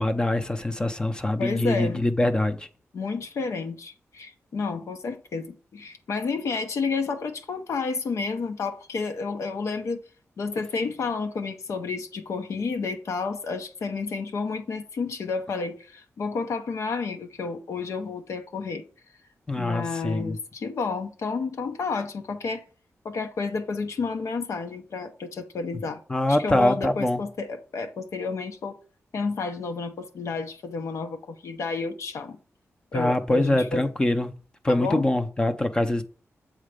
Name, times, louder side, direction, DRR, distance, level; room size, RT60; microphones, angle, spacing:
voice 1, 0.0-2.7 19.5-20.4 26.1-27.2 32.9-34.4 34.6-36.0, left 1 dB, 15° left, 0.6 m, -24 dB
voice 2, 1.4-2.0 2.9-10.0 10.4-18.9 19.6-22.6 23.0-26.0 26.4-28.8 29.1-32.4 32.9-33.9 34.7-35.1, left 4 dB, 75° left, 0.8 m, -31 dB
7.4 x 4.3 x 5.0 m
wide cardioid pair, 160°, 5 cm